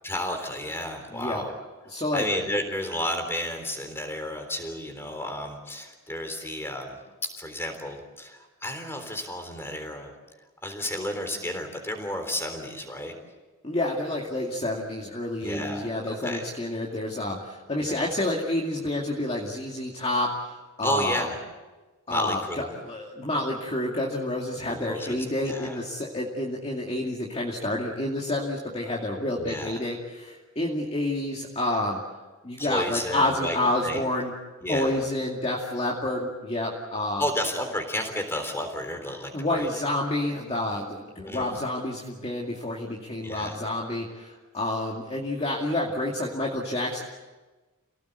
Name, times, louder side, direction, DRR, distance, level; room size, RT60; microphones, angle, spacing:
voice 1, 0.0-1.5 2.1-7.0 7.4-10.1 10.6-13.2 15.4-16.4 17.8-18.0 20.8-21.4 22.1-22.7 24.6-25.8 29.4-29.8 32.6-34.0 34.6-35.0 37.2-39.7 41.2-41.5 43.2-43.6, left 1 dB, 10° left, 5 dB, 3.7 m, -32 dB
voice 2, 1.1-1.4 1.9-2.2 13.6-21.2 22.1-32.0 32.4-34.3 34.7-37.2 39.3-47.0, left 1 dB, 25° left, -3 dB, 2.4 m, -29 dB
28.5 x 18.0 x 8.3 m, 1.2 s
head